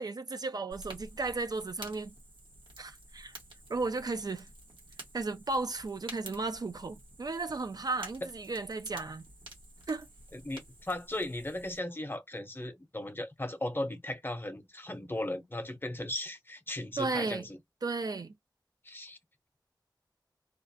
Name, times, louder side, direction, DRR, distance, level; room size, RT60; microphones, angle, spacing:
voice 1, 0.0-2.1 2.8-3.3 3.7-4.5 5.1-9.2 9.9-10.1 17.0-17.5 17.8-18.3, right 3 dB, 55° right, 0.4 m, -34 dB
Fire, 0.7-11.8, right 1 dB, 85° right, 1.1 m, -50 dB
voice 2, 10.3-17.5 18.8-19.2, left 1 dB, 25° left, 0.7 m, -37 dB
2.3 x 2.1 x 2.6 m
wide cardioid pair, 55°, 8 cm